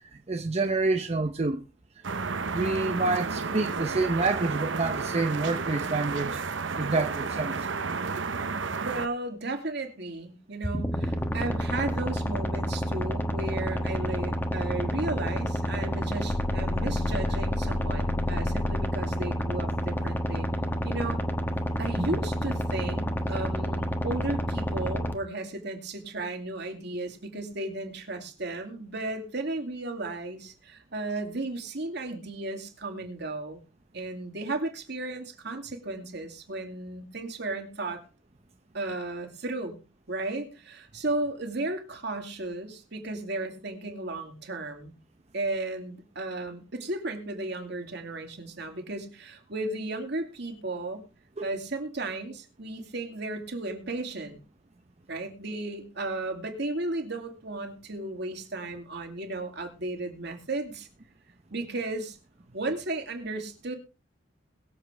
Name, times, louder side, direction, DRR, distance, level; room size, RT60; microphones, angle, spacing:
voice 1, 0.3-1.6 2.5-6.4 6.8-7.7 22.0-22.1 51.4-51.5, right 3 dB, 35° right, 0.7 m, -28 dB
sound 1, 2.0-9.1, right 4 dB, 80° right, 0.9 m, -32 dB
voice 2, 8.8-20.5 20.8-21.2 21.8-33.6 33.9-38.0 38.7-39.8 40.1-44.9 45.3-51.0 51.4-54.4 55.1-60.9 61.5-62.2 62.5-63.8, right 2 dB, 60° right, 2.6 m, -34 dB
sound 2, 10.6-25.1, equal, 10° left, 1.2 m, -29 dB
sound 3, 16.3-19.1, left 2 dB, 65° left, 0.7 m, -32 dB
22.0 x 7.5 x 3.4 m
head